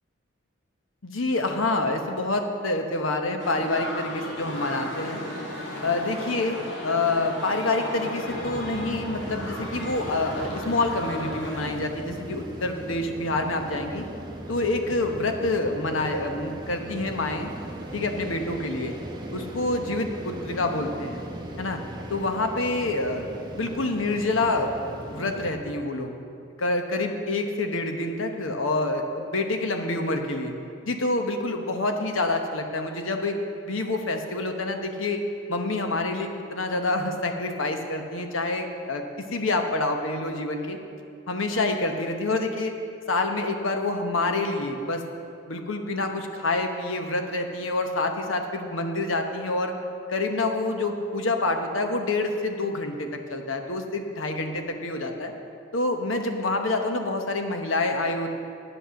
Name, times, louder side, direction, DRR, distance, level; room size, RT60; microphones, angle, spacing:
voice 1, 1.0-5.2 5.8-6.6 6.8-14.0 14.5-17.5 17.9-18.9 19.3-21.2 21.6-21.8 22.1-23.2 23.6-26.1 26.6-30.5 30.9-33.4 33.6-35.2 35.5-40.8 41.3-42.7 43.1-45.0 45.5-49.7 50.1-55.3 55.7-58.3, left 2 dB, 75° left, 5 dB, 1.0 m, -27 dB
sound 1, 3.4-11.7, left 1 dB, 60° left, 1.8 m, -35 dB
sound 2, 8.3-25.5, right 1 dB, 20° right, 1.0 m, -38 dB
9.3 x 8.2 x 6.3 m, 2.5 s
head